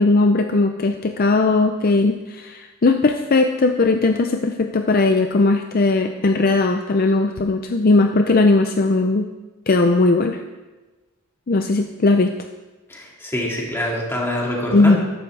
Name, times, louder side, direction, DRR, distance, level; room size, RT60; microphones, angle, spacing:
voice 1, 0.0-9.3 9.7-10.4 11.5-12.3 14.7-15.0, left 3 dB, 45° left, 6 dB, 0.5 m, -18 dB
voice 2, 12.9-15.0, left 1 dB, 10° left, -3 dB, 2.3 m, -25 dB
14.0 x 11.5 x 3.3 m, 1.2 s
head